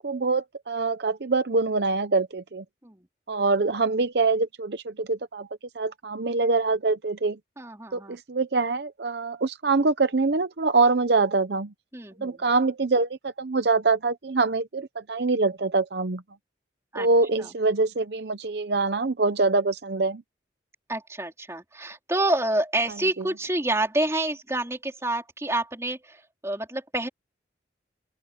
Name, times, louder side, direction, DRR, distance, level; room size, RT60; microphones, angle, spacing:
voice 1, 0.0-2.6 3.3-5.5 5.8-7.4 7.9-11.7 12.2-16.2 16.9-20.2 23.2-23.3, right 3 dB, 65° right, 0.7 m, -24 dB
voice 2, 7.6-8.2 11.9-12.4 16.9-17.1 17.4-17.5 20.9-27.1, right 1 dB, 15° right, 3.5 m, -28 dB
open air
head